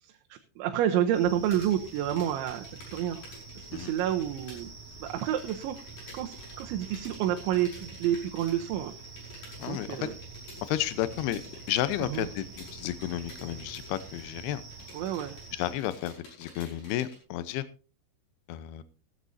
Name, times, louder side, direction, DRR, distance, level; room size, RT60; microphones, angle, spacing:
voice 1, 0.0-3.2 3.6-4.7 5.0-5.8 6.1-8.9 9.7-10.1 12.0-12.3 14.9-15.4, right 11 dB, 80° right, 4 dB, 3.1 m, -29 dB
sound 1, 1.1-15.7, right 4 dB, 25° right, 4.7 m, -46 dB
sound 2, 1.4-4.6 4.9-17.2, left 2 dB, 55° left, 7.2 m, -51 dB
voice 2, 9.6-10.1 10.6-11.4 11.7-14.6 15.5-17.6 18.5-18.8, left 13 dB, 75° left, 14 dB, 2.4 m, -32 dB
16.5 x 13.5 x 2.7 m, 0.34 s
omnidirectional pair, 5.5 m